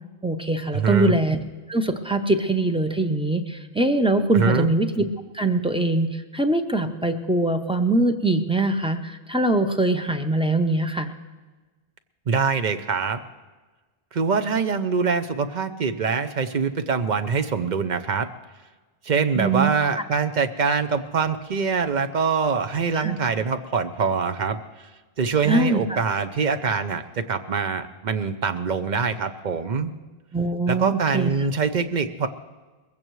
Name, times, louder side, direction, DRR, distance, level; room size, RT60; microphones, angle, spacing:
voice 1, 0.2-1.4 1.7-5.0 5.3-11.1 19.4-19.7 23.0-23.1 25.4-25.8 30.3-31.3, right 2 dB, 5° right, 7 dB, 0.6 m, -22 dB
voice 2, 0.7-1.2 4.3-4.7 12.3-13.2 14.1-18.3 19.0-24.6 25.2-29.9 30.7-32.3, right 5 dB, 50° right, 8 dB, 0.8 m, -24 dB
21.0 x 15.5 x 3.1 m, 1.3 s
omnidirectional pair, 1.0 m